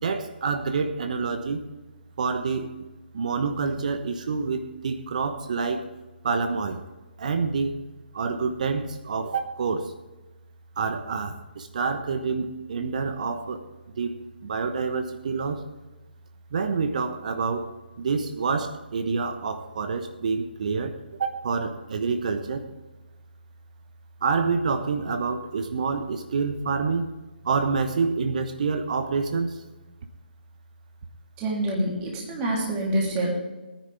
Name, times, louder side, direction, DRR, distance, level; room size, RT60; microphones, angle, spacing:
voice 1, 0.0-1.6 2.2-2.7 3.1-5.9 6.2-6.8 7.2-7.8 8.1-9.9 10.8-13.6 14.0-15.7 16.5-22.7 24.2-27.1 27.4-29.6 32.3-32.4, right 4 dB, 45° right, 8 dB, 1.1 m, -27 dB
voice 2, 31.4-33.3, right 1 dB, 20° right, -2 dB, 3.4 m, -26 dB
19.0 x 10.0 x 3.5 m, 1.2 s
figure-of-eight pair, 140°, 6 cm